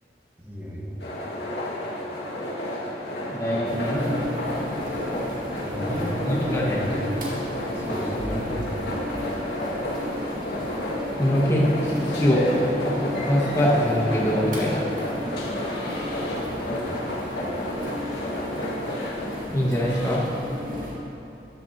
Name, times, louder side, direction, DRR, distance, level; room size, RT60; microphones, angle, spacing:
voice 1, 0.4-1.0 4.0-4.5 5.6-7.3 7.7-8.8 16.7-16.8, equal, 10° right, -4 dB, 1.5 m, -31 dB
sound 1, 1.0-20.2, left 1 dB, 75° left, 2.1 m, -31 dB
voice 2, 3.3-4.0 6.3-6.8 11.2-15.0 19.5-20.2, equal, 15° left, -5 dB, 1.8 m, -23 dB
sound 2, 3.7-20.9, left 1 dB, 50° right, 2.2 m, -34 dB
14.0 x 12.5 x 3.0 m, 2.8 s
head